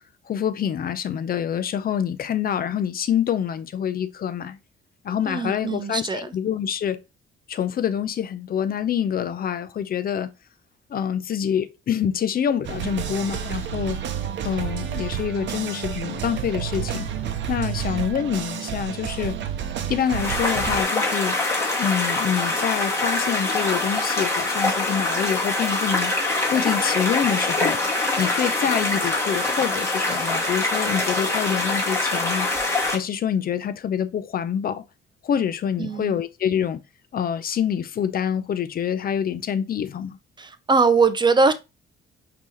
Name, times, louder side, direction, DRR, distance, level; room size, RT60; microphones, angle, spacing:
voice 1, 0.3-4.6 5.0-7.0 7.5-10.3 10.9-14.0 14.4-17.1 17.5-19.4 19.9-21.4 21.8-26.1 26.5-27.8 28.2-32.5 32.9-34.8 35.2-36.8 37.1-40.2, left 8 dB, 50° left, 0.6 m, -26 dB
voice 2, 5.3-6.2 35.8-36.2 40.4-41.5, right 4 dB, 20° right, 0.6 m, -21 dB
sound 1, 12.6-20.8, right 9 dB, 65° right, 0.7 m, -30 dB
sound 2, 20.1-33.0, left 2 dB, 15° left, 1.7 m, -24 dB
5.2 x 2.9 x 3.1 m
cardioid pair, 90°, 20 cm